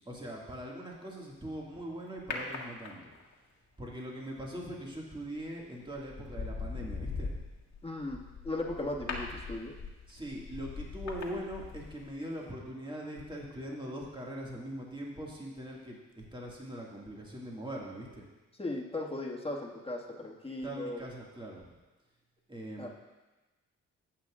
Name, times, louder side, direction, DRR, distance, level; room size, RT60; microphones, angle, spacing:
voice 1, 0.1-3.0 3.8-7.3 10.1-18.2 20.6-21.6 22.5-22.9, right 1 dB, 15° right, -3 dB, 2.0 m, -41 dB
sound 1, 2.3-3.3 5.2-5.5 6.0-12.2 12.4-12.5, left 4 dB, 55° left, 1.7 m, -40 dB
voice 2, 7.8-9.7 18.6-21.0 22.8-22.9, left 2 dB, 15° left, -1 dB, 1.8 m, -37 dB
17.0 x 5.9 x 2.5 m, 1.2 s
supercardioid pair, 45°, 32 cm